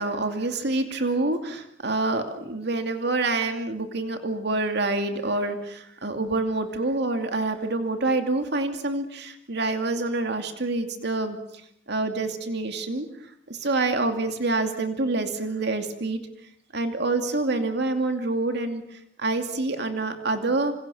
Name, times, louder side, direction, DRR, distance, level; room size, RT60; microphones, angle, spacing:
voice 1, 0.0-11.4 11.9-13.1 13.5-16.2 16.7-18.8 19.2-20.7, right 2 dB, 65° right, 6 dB, 2.6 m, -27 dB
27.5 x 27.5 x 7.1 m, 0.74 s
head